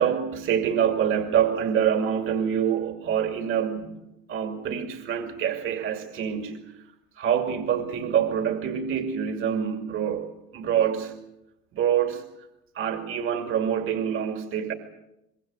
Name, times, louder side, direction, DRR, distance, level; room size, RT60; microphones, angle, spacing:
voice 1, 0.0-4.0 4.3-6.7 7.2-11.2 11.7-12.2 12.7-14.7, right 8 dB, 45° right, 5 dB, 2.4 m, -26 dB
24.0 x 22.0 x 7.8 m, 0.89 s
cardioid pair, 160°, 30 cm